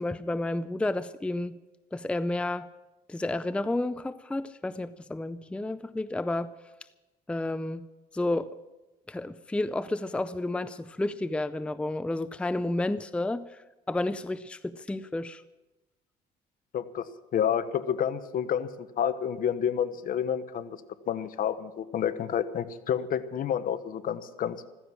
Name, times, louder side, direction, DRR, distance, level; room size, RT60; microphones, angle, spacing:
voice 1, 0.0-1.6 1.9-2.7 3.1-6.5 7.3-7.9 8.1-8.5 9.1-13.5 13.9-15.4, left 2 dB, 5° left, 14 dB, 0.5 m, -31 dB
voice 2, 16.7-20.8 21.1-24.6, left 8 dB, 55° left, 13 dB, 1.0 m, -29 dB
15.5 x 14.0 x 6.1 m, 1.1 s
cardioid pair, 110°, 17 cm